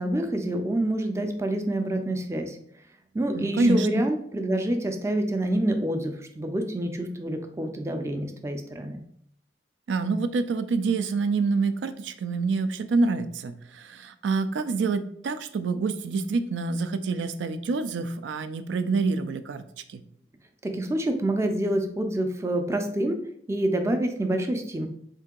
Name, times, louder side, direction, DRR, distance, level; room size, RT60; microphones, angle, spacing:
voice 1, 0.0-2.6 3.1-9.0 20.6-23.2 23.5-24.9, right 1 dB, 15° right, 5 dB, 0.4 m, -27 dB
voice 2, 3.3-4.0 9.9-19.6 19.9-20.0, right 4 dB, 85° right, 11 dB, 0.4 m, -27 dB
3.7 x 2.7 x 3.6 m, 0.66 s
head